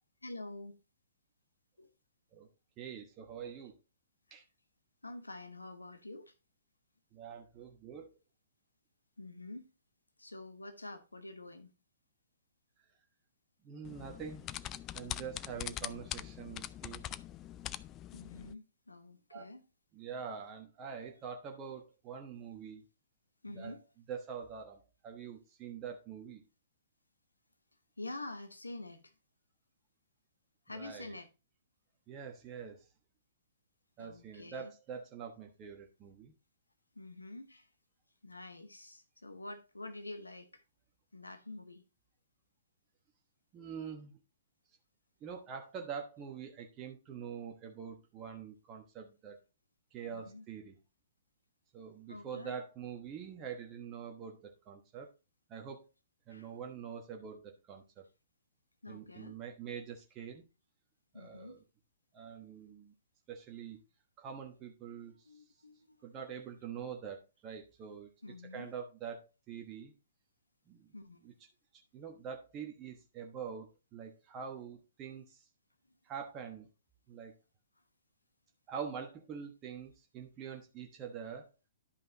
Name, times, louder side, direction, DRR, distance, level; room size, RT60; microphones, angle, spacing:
voice 1, 0.2-0.8 1.8-1.9 4.3-4.4 5.0-6.3 9.2-9.7 10.2-11.7 18.1-19.6 23.4-23.8 28.0-29.1 30.7-31.3 34.0-34.7 36.9-37.7 38.2-40.6 41.1-41.8 50.1-50.4 52.1-52.6 56.3-56.5 58.8-59.4 61.1-61.6 65.2-66.0 68.2-68.7 70.9-71.3, left 2 dB, 80° left, 1.1 m, -47 dB
voice 2, 2.8-3.7 4.3-4.4 7.1-8.1 13.6-14.5 14.9-17.1 19.3-19.4 19.9-22.8 23.5-23.8 24.1-26.4 30.7-31.2 32.1-32.9 34.0-36.3 43.5-44.2 45.2-49.4 49.9-50.7 51.7-55.1 55.5-55.9 56.3-58.0 58.9-60.4 61.1-61.6 62.1-62.9 63.3-63.8 64.2-65.3 66.0-68.1 68.5-69.9 70.7-70.9 71.2-71.3 71.7-75.4 76.0-76.7 77.1-77.3 78.7-81.5, right 7 dB, 25° right, 1.2 m, -45 dB
sound 1, 13.9-18.5, left 12 dB, 25° left, 0.3 m, -43 dB
11.5 x 5.3 x 2.9 m
figure-of-eight pair, 115°, 0 cm